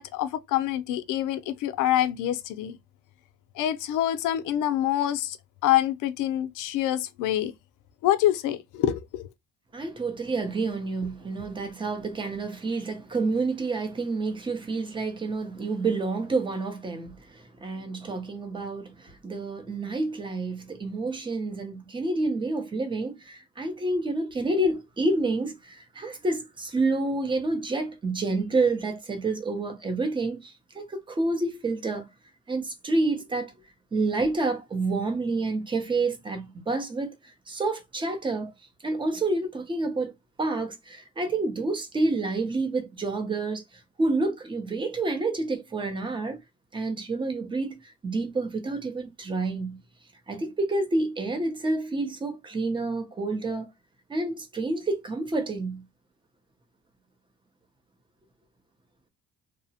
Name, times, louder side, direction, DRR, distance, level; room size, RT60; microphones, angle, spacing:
voice 1, 0.0-2.8 3.6-5.4 5.6-7.5 8.0-9.2, left 12 dB, 85° left, 0.5 m, -26 dB
voice 2, 9.7-32.1 32.5-33.5 33.9-38.5 38.8-40.1 40.4-46.4 46.7-49.8 50.3-53.7 54.1-55.8, right 2 dB, 15° right, 0.6 m, -29 dB
2.8 x 2.1 x 2.7 m
cardioid pair, 155°, 30 cm